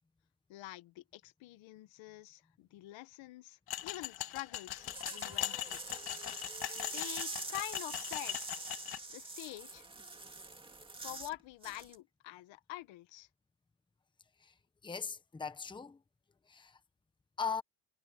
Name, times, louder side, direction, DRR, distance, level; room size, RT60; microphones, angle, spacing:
voice 1, 0.5-5.8 6.8-8.4 9.1-9.8 11.0-13.3, left 17 dB, 75° left, 1.4 m, -46 dB
sound 1, 3.7-9.0, left 12 dB, 55° left, 1.8 m, -40 dB
sound 2, 4.7-11.3 11.6-11.9, right 3 dB, 10° right, 2.3 m, -45 dB
voice 2, 14.8-16.0 16.5-16.8 17.4-17.6, left 5 dB, 10° left, 0.9 m, -39 dB
cardioid pair, 165°, 46 cm